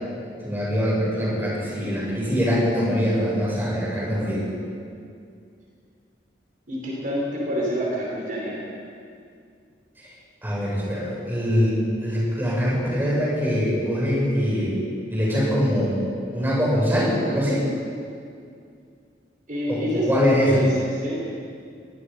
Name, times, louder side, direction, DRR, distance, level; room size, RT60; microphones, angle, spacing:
voice 1, 0.4-4.5 10.4-14.8 15.1-16.0 16.3-17.6 19.7-20.6, equal, 10° right, -6 dB, 7.5 m, -23 dB
voice 2, 1.1-1.5 6.7-8.7 19.5-21.2, equal, 50° right, -4 dB, 5.3 m, -28 dB
26.0 x 19.5 x 5.6 m, 2.3 s
head